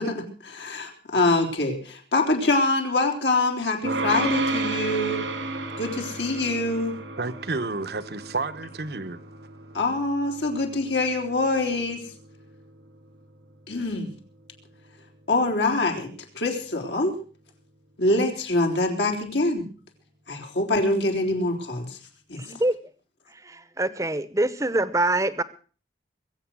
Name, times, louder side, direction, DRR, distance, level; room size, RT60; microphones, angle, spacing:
voice 1, 0.0-5.3 5.8-7.0 9.7-12.1 13.7-14.1 15.3-17.2 18.0-19.7 20.3-22.0 22.3-22.4, left 2 dB, 75° left, 3.6 m, -25 dB
sound 1, 3.8-15.2, right 2 dB, 90° right, 2.5 m, -33 dB
voice 2, 7.2-9.2, right 3 dB, 60° right, 1.0 m, -30 dB
voice 3, 22.4-22.7 23.5-25.4, right 2 dB, 15° right, 0.8 m, -25 dB
22.5 x 7.9 x 6.2 m
head